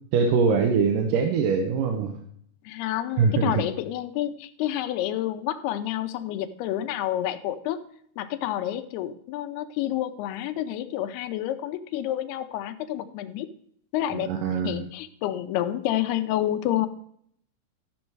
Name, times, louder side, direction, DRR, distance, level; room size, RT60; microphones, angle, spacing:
voice 1, 0.1-2.2 3.2-3.7 14.1-14.9, right 5 dB, 70° right, 4 dB, 2.2 m, -23 dB
voice 2, 2.7-7.8 8.2-13.5 13.9-14.3 14.6-16.9, left 12 dB, 90° left, 9 dB, 2.7 m, -29 dB
13.5 x 6.4 x 4.6 m, 0.66 s
omnidirectional pair, 4.5 m